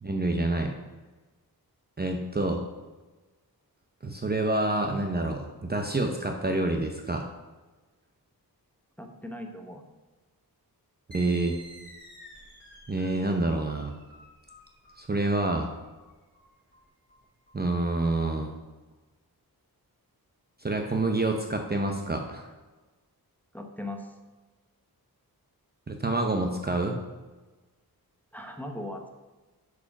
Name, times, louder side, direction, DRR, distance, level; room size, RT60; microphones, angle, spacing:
voice 1, 0.0-0.7 2.0-2.6 4.0-7.3 11.1-11.6 12.9-13.9 15.0-15.7 17.5-18.5 20.6-22.5 25.9-27.0, right 2 dB, 25° right, 3 dB, 0.7 m, -27 dB
voice 2, 9.0-9.8 23.5-24.1 28.3-29.1, left 1 dB, 5° left, 3 dB, 1.0 m, -38 dB
sound 1, 11.1-18.3, right 1 dB, 30° left, 3.1 m, -51 dB
8.7 x 4.8 x 5.9 m, 1.2 s
wide cardioid pair, 120°, 38 cm